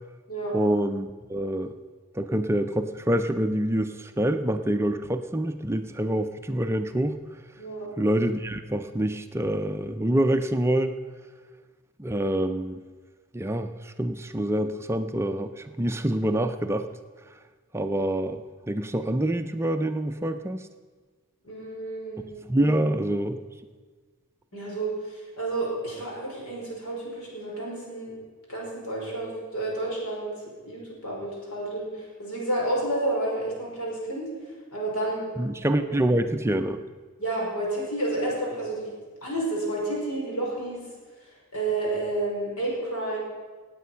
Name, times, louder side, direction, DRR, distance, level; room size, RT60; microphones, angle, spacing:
voice 1, 0.5-1.7 2.1-7.2 8.0-11.0 12.0-12.8 13.3-16.9 17.7-20.7 22.5-23.4 35.4-36.8, right 1 dB, 10° right, 7 dB, 0.4 m, -26 dB
voice 2, 7.6-7.9 21.4-22.4 24.5-28.1 28.5-30.3 30.6-34.3 34.7-35.3 37.2-38.9 39.2-40.8 41.2-43.2, right 2 dB, 80° left, -3 dB, 5.0 m, -30 dB
17.5 x 8.5 x 5.6 m, 1.4 s
head